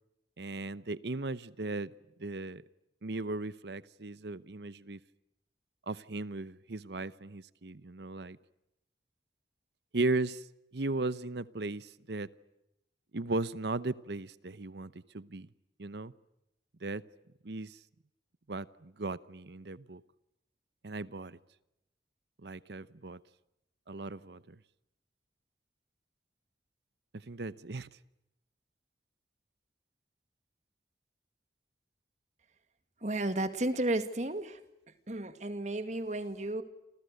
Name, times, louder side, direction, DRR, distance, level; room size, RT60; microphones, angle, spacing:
voice 1, 0.4-1.9 2.2-2.6 3.0-5.0 5.9-8.4 9.9-10.5 10.7-12.3 13.1-15.5 15.8-16.1 16.8-17.0 17.4-17.8 18.5-20.0 20.8-21.4 22.4-23.2 23.9-24.6 27.1-27.9, right 2 dB, 75° right, 0.9 m, -37 dB
voice 2, 33.0-34.6 35.1-36.6, right 1 dB, 40° right, 2.2 m, -33 dB
30.0 x 27.0 x 6.7 m
head